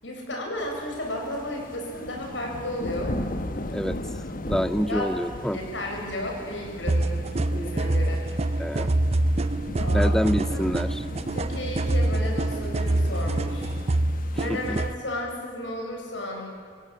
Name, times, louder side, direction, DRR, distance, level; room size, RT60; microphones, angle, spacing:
voice 1, 0.0-3.2 4.9-5.1 5.5-8.3 9.8-10.1 10.5-10.7 11.3-13.7 14.3-16.5, left 1 dB, 85° left, 0 dB, 7.2 m, -33 dB
sound 1, 0.6-14.9, left 1 dB, 50° left, 1.3 m, -37 dB
voice 2, 4.5-5.6 8.6-8.9 9.9-11.0 14.5-14.8, equal, 5° left, 12 dB, 0.5 m, -26 dB
sound 2, 6.9-14.9, right 1 dB, 35° right, 0.7 m, -25 dB
27.5 x 17.0 x 8.4 m, 2.2 s
head